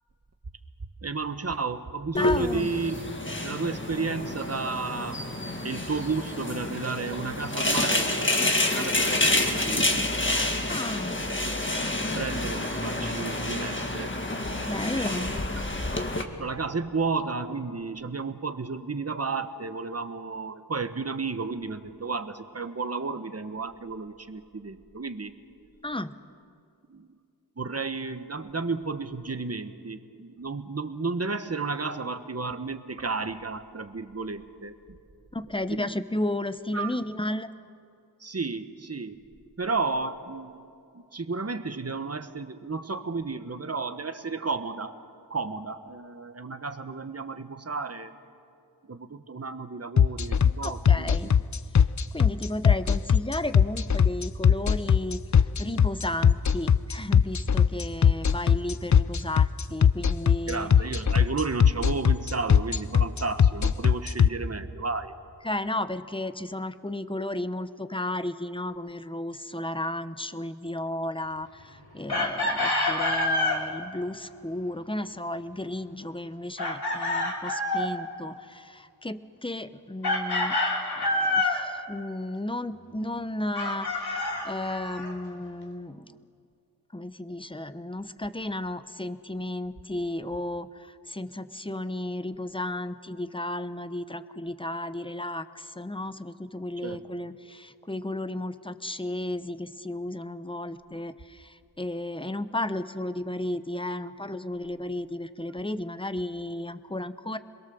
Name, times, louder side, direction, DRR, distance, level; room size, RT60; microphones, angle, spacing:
voice 1, 1.0-3.0 3.4-5.2 5.6-10.1 11.2-11.4 12.1-14.2 14.7-15.6 16.4-25.3 26.9-27.1 27.6-35.0 35.8-35.9 36.7-37.0 38.2-39.2 39.6-40.6 40.9-45.0 45.3-48.2 48.9-51.4 60.5-65.1 96.8-97.0, right 4 dB, 35° right, 9 dB, 1.3 m, -33 dB
sound 1, 2.1-16.2, left 2 dB, 30° left, 1.9 m, -28 dB
voice 2, 2.2-2.7 10.7-11.3 14.7-15.3 25.8-26.1 35.3-37.5 50.6-51.3 52.1-60.7 65.4-80.6 80.9-86.2 86.9-107.4, left 1 dB, 15° left, 12 dB, 0.9 m, -33 dB
sound 2, 50.0-64.3, left 7 dB, 45° left, 0.5 m, -19 dB
Chicken rooster, 72.1-73.6 76.6-77.9 80.0-81.6 83.5-85.1, left 2 dB, 65° left, 3.1 m, -27 dB
27.5 x 21.5 x 7.1 m, 2.5 s
wide cardioid pair, 65°, 41 cm